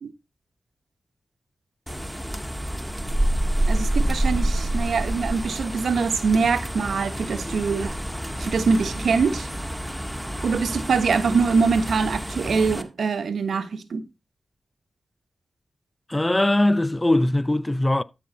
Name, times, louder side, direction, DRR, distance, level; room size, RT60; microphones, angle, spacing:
sound 1, 1.9-12.8, right 1 dB, ahead, 1.6 m, -28 dB
voice 1, 3.7-8.0 8.4-9.5 10.4-14.1, right 5 dB, 75° right, 1.2 m, -23 dB
voice 2, 16.1-18.0, left 1 dB, 20° left, 0.7 m, -21 dB
13.0 x 5.5 x 4.0 m
supercardioid pair, 40°, 0 cm